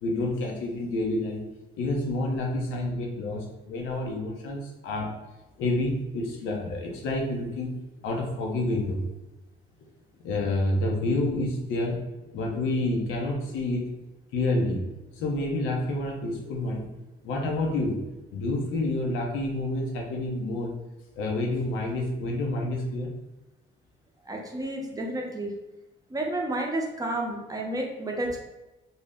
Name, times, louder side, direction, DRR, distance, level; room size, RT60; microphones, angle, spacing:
voice 1, 0.0-1.4 1.8-5.2 5.6-7.7 8.0-9.0 10.2-12.0 12.3-13.9 14.3-14.9 15.1-16.9 17.2-18.0 18.3-20.7 21.2-23.1, left 2 dB, 85° left, 0 dB, 0.7 m, -28 dB
voice 2, 24.3-25.5 26.1-28.4, right 1 dB, 20° right, 0 dB, 0.6 m, -31 dB
2.6 x 2.1 x 3.4 m, 1.0 s
cardioid pair, 90°, 20 cm